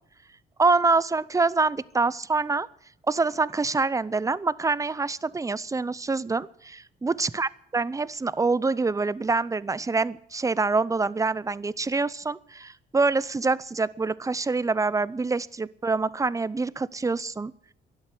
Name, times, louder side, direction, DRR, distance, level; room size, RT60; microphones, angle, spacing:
voice 1, 0.6-2.7 3.1-17.5, right 3 dB, 15° right, 19 dB, 0.6 m, -26 dB
12.5 x 11.0 x 9.6 m, 0.67 s
cardioid pair, 90°, 20 cm